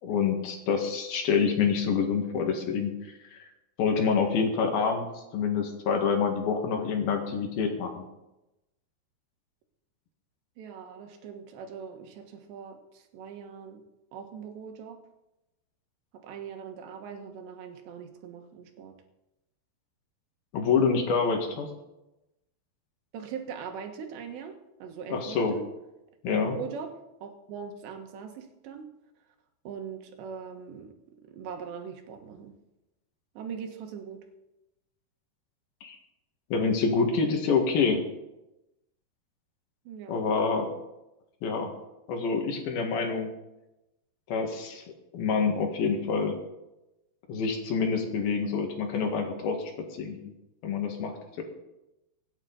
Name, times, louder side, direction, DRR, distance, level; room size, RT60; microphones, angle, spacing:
voice 1, 0.0-3.5 3.8-8.0 20.5-21.7 25.1-25.6 26.2-26.6 35.8-36.0 36.5-38.0 40.1-40.7 41.4-41.7 42.1-43.3 44.3-44.8 45.1-46.4 47.3-49.7 50.0-50.2 50.6-51.4, left 5 dB, 65° left, 3 dB, 3.4 m, -27 dB
voice 2, 10.6-13.8 14.1-15.0 16.1-19.0 23.1-25.7 26.3-28.9 29.7-32.5 33.4-34.3 39.9-40.2, right 6 dB, 90° right, 5 dB, 3.7 m, -41 dB
25.5 x 9.1 x 4.0 m, 0.94 s
omnidirectional pair, 4.9 m